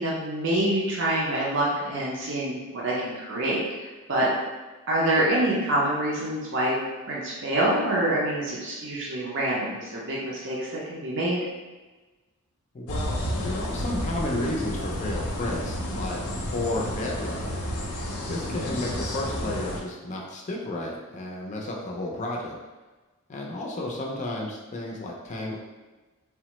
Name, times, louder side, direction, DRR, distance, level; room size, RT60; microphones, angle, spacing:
voice 1, 0.0-4.3 4.9-6.8 7.1-11.4, right 1 dB, 55° right, -5 dB, 0.5 m, -26 dB
voice 2, 12.7-17.7 18.3-22.6 23.3-25.6, left 1 dB, 35° left, -2 dB, 0.4 m, -32 dB
sound 1, 12.9-19.8, equal, 90° left, 0.6 m, -31 dB
3.3 x 2.0 x 2.9 m, 1.2 s
head